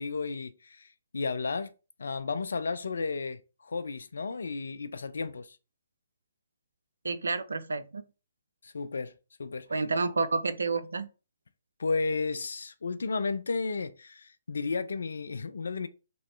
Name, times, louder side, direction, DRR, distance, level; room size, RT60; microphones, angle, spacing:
voice 1, 0.0-1.7 2.0-5.6 8.6-9.1 9.4-9.7 11.8-15.9, left 4 dB, 70° left, 0.4 m, -33 dB
voice 2, 7.0-8.0 9.7-11.1, right 3 dB, 75° right, 0.4 m, -29 dB
3.0 x 3.0 x 3.1 m
figure-of-eight pair, 135°, 0 cm